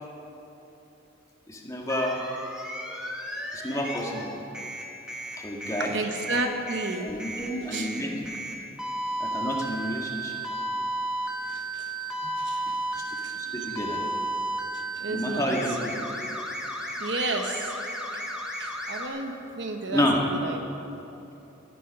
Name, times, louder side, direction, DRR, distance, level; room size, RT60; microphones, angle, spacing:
voice 1, 1.5-2.2 3.5-4.3 5.4-5.9 7.0-8.4 9.2-10.4 12.9-13.0 13.3-14.0 15.1-16.0 19.9-20.2, equal, 15° left, -1 dB, 1.8 m, -30 dB
sound 1, 1.9-4.2 4.5-19.1, right 1 dB, 5° right, 1.4 m, -33 dB
voice 2, 5.8-7.1 7.7-7.9 9.1-9.2 11.4-11.9 12.4-13.8 14.7-15.5 17.0-17.7 18.6-20.6, right 2 dB, 65° right, 4 dB, 1.3 m, -33 dB
15.5 x 14.0 x 5.5 m, 3.0 s
head